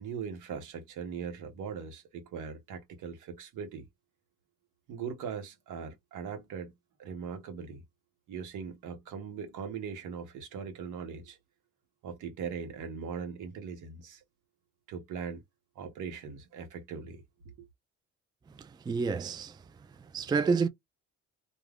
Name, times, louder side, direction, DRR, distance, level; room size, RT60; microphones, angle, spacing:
voice 1, 0.0-3.8 4.9-6.7 7.0-7.8 8.3-11.4 12.0-14.2 14.9-15.4 15.8-17.2 17.6-17.7, right 6 dB, 85° right, 1.0 m, -40 dB
voice 2, 18.6-19.6 20.1-20.7, right 5 dB, 15° right, 0.3 m, -29 dB
2.4 x 2.3 x 3.3 m
cardioid pair, 90°, 30 cm